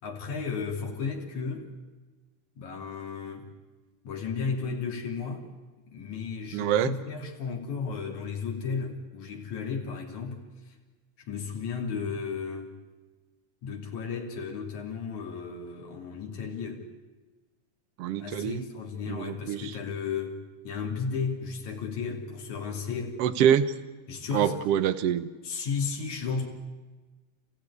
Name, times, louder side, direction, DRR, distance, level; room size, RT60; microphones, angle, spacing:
voice 1, 0.0-1.7 2.6-3.5 4.0-5.5 5.9-10.4 11.3-12.7 13.6-16.9 18.2-23.2 24.1-24.6 25.4-26.5, left 5 dB, 65° left, 4.3 m, -34 dB
voice 2, 6.5-6.9 18.0-18.7 19.1-19.8 23.2-23.6 24.3-25.3, right 9 dB, 65° right, 1.6 m, -25 dB
29.0 x 15.5 x 9.8 m
omnidirectional pair, 3.6 m